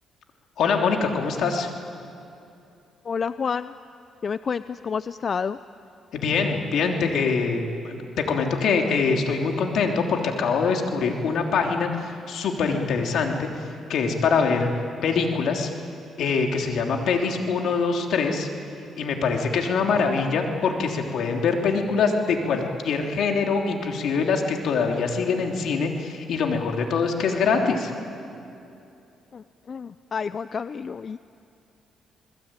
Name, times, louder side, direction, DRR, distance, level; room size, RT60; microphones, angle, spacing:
voice 1, 0.6-1.7 6.1-14.7 15.0-15.7 16.2-18.5 19.0-27.9, left 5 dB, 70° left, 2 dB, 3.2 m, -24 dB
voice 2, 3.1-3.7 4.2-5.6 29.3-31.2, left 6 dB, 45° left, 14 dB, 0.5 m, -29 dB
28.0 x 21.0 x 9.0 m, 2.7 s
cardioid pair, 90°, 0 cm